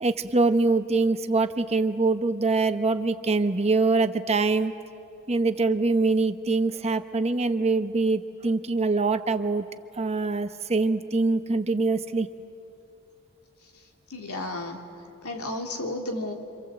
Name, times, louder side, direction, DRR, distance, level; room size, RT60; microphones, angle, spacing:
voice 1, 0.0-4.7 5.3-9.6 10.0-12.3, right 3 dB, 30° right, 9 dB, 0.9 m, -24 dB
voice 2, 13.6-14.8 15.2-16.3, left 1 dB, 80° left, 3 dB, 2.8 m, -33 dB
27.5 x 26.5 x 8.0 m, 2.7 s
head